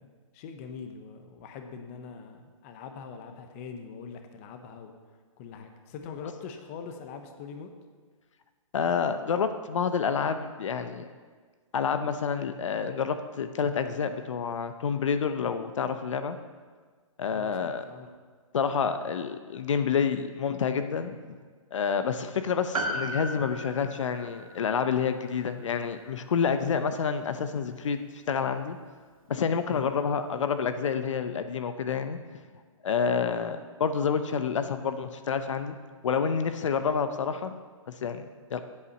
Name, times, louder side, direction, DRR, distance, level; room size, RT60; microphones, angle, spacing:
voice 1, 0.0-4.9 5.4-7.7 17.3-18.1 29.7-29.9, left 6 dB, 25° left, 6 dB, 0.8 m, -43 dB
voice 2, 8.7-11.1 11.7-16.4 17.2-17.8 18.5-21.2 21.7-28.0 28.3-28.8 29.3-32.2 32.8-35.8 36.0-37.5 37.9-38.6, left 6 dB, 65° left, 9 dB, 0.8 m, -28 dB
Piano, 22.7-27.3 27.6-27.7, right 1 dB, 85° right, 1.9 m, -37 dB
8.3 x 8.3 x 7.1 m, 1.5 s
hypercardioid pair, 160°, 17 cm